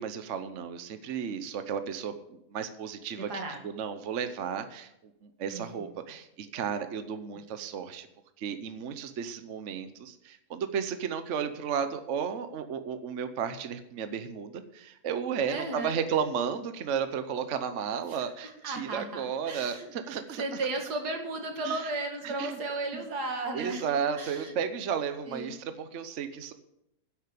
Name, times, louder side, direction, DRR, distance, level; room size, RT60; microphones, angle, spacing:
voice 1, 0.0-8.1 8.4-20.4 21.6-21.8 22.2-22.6 23.5-26.5, right 7 dB, 55° right, 10 dB, 1.1 m, -33 dB
voice 2, 3.3-3.6 5.5-5.8 15.5-16.0 17.9-18.3 18.6-23.9 24.1-24.5 25.3-25.6, right 2 dB, 90° right, 3 dB, 2.6 m, -35 dB
10.5 x 8.3 x 8.3 m, 0.83 s
omnidirectional pair, 1.7 m